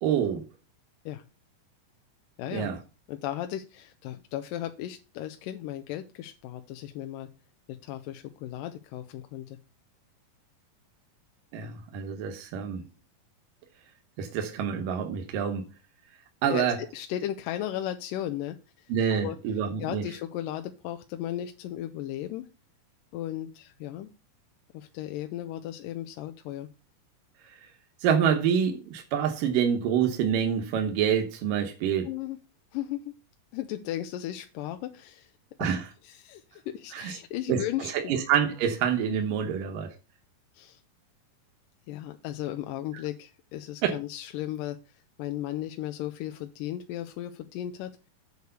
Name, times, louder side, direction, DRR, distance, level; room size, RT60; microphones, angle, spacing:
voice 1, 0.0-0.4 2.5-2.8 11.5-12.8 14.2-15.7 16.4-16.8 18.9-20.0 28.0-32.1 35.6-35.8 36.9-37.2 37.5-39.9 43.8-44.0, right 8 dB, 75° right, 2.7 m, -27 dB
voice 2, 2.4-2.7 3.1-7.3 7.8-9.6 16.5-19.4 19.8-22.5 23.1-24.1 24.7-26.7 32.0-32.4 32.7-33.2 33.5-35.3 35.6-35.8 36.0-38.1 40.5-40.8 41.9-48.0, left 12 dB, 80° left, 2.2 m, -36 dB
8.2 x 4.7 x 6.6 m
omnidirectional pair, 4.0 m